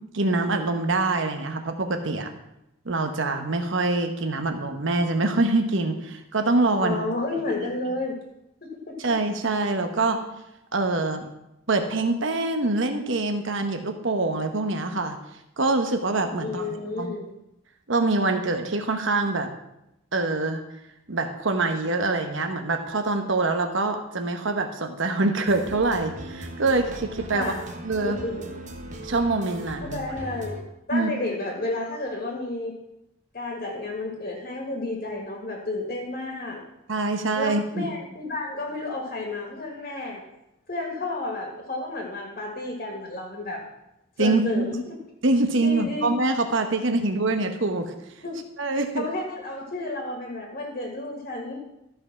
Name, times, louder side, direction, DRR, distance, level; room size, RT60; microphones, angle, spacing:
voice 1, 0.1-2.3 2.8-7.0 9.0-10.2 10.7-11.3 11.7-15.2 15.6-17.1 17.9-19.5 20.1-20.6 21.1-27.5 27.8-28.2 29.0-30.0 30.9-31.1 36.9-38.0 44.2-44.6 45.2-47.9 48.6-49.1, right 2 dB, 65° right, 6 dB, 1.0 m, -25 dB
voice 2, 6.8-8.2 8.9-9.1 16.4-17.3 27.3-27.6 28.0-28.5 29.8-30.6 30.9-32.8 33.3-36.6 37.4-40.2 40.7-43.6 44.2-45.0 45.6-46.1 48.2-48.4 49.0-51.6, left 2 dB, 40° left, 0 dB, 1.8 m, -31 dB
sound 1, 25.5-30.6, right 1 dB, 35° right, 1.3 m, -39 dB
13.5 x 5.3 x 5.9 m, 0.86 s
head